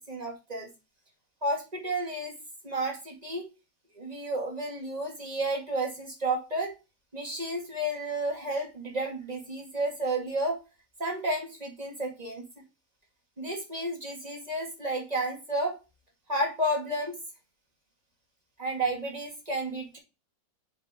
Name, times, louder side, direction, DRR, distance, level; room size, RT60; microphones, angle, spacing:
voice 1, 0.1-0.7 1.4-2.4 2.6-3.5 3.9-6.8 7.1-10.6 11.0-12.5 13.4-15.8 16.3-17.2 18.6-20.0, right 1 dB, 20° right, 0 dB, 2.1 m, -31 dB
7.3 x 5.4 x 3.7 m, 0.28 s
omnidirectional pair, 2.0 m